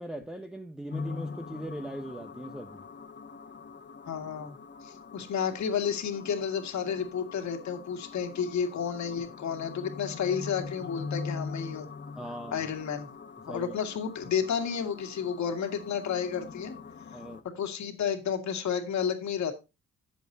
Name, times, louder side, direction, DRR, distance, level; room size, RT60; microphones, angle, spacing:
voice 1, 0.0-2.8 12.2-12.7 13.5-13.7 17.1-17.4, right 1 dB, ahead, 0.8 m, -40 dB
sound 1, 0.9-17.4, left 4 dB, 35° left, 1.5 m, -42 dB
voice 2, 4.1-4.6 4.8-11.9 12.5-13.1 13.5-16.7 17.5-19.5, left 7 dB, 65° left, 2.1 m, -31 dB
12.5 x 7.7 x 2.6 m
cardioid pair, 90°, 30 cm